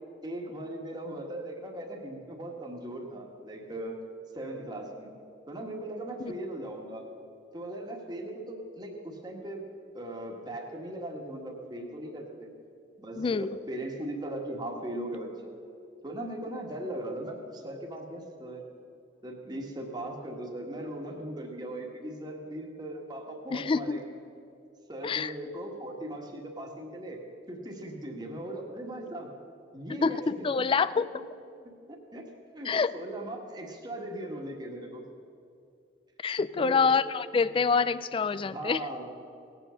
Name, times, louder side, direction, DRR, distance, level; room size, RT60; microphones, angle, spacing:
voice 1, 0.2-4.0 4.3-5.1 5.5-7.0 7.5-9.6 9.9-12.5 13.0-15.3 16.0-18.6 19.2-24.1 24.9-27.2 27.5-29.3 29.7-30.5 31.9-32.2 32.5-35.0 36.6-36.9 38.5-39.1, right 1 dB, 25° right, 0 dB, 1.6 m, -38 dB
voice 2, 13.2-13.6 23.5-24.0 25.0-25.3 30.0-31.1 32.6-32.9 36.2-38.8, left 5 dB, 30° left, 17 dB, 0.3 m, -26 dB
18.0 x 8.2 x 6.3 m, 2.5 s
head